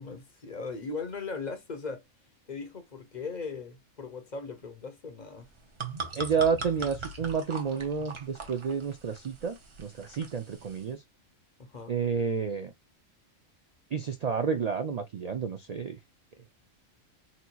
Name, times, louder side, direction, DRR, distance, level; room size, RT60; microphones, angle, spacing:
voice 1, 0.0-2.0 2.5-5.5 11.6-12.0, left 4 dB, 40° left, 0.8 m, -38 dB
sound 1, 5.4-10.9, right 3 dB, 30° right, 0.7 m, -41 dB
voice 2, 6.1-11.0 11.9-12.7 13.9-16.0, right 6 dB, 85° right, 0.3 m, -30 dB
4.3 x 2.7 x 2.2 m
omnidirectional pair, 1.3 m